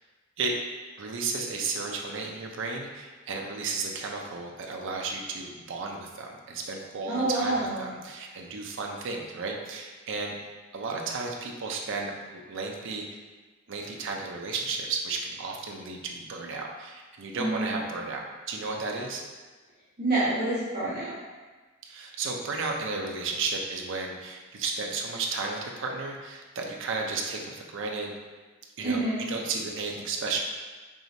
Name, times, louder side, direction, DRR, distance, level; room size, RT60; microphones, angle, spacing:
voice 1, 1.0-10.3 10.7-13.2 13.7-19.2 21.9-28.1 28.8-29.0 29.3-30.4, right 4 dB, 65° right, 1 dB, 0.5 m, -33 dB
voice 2, 7.1-7.8 17.3-17.8 20.0-21.1 28.8-29.3, right 2 dB, 50° right, -11 dB, 1.4 m, -27 dB
4.8 x 2.8 x 2.6 m, 1.3 s
head